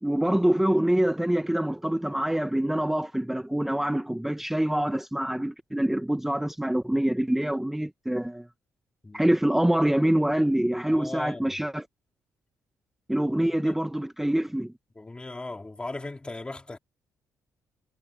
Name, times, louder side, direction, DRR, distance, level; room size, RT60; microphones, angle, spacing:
voice 1, 0.0-8.5 9.1-11.9 13.1-14.7, right 1 dB, 5° right, 1.0 m, -25 dB
voice 2, 10.9-11.5 13.4-13.8 15.0-16.8, left 2 dB, 15° left, 3.9 m, -38 dB
cardioid pair, 115°, 6 cm